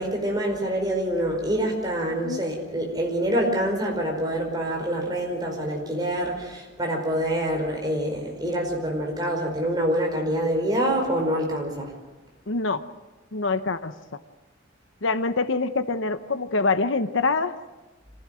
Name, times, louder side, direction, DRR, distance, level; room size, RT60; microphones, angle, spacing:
voice 1, 0.0-11.9, right 1 dB, 20° right, 1 dB, 5.0 m, -26 dB
voice 2, 12.5-12.8 13.3-13.9 15.0-17.5, left 3 dB, 70° left, 10 dB, 1.0 m, -25 dB
26.0 x 16.0 x 7.7 m, 1.2 s
head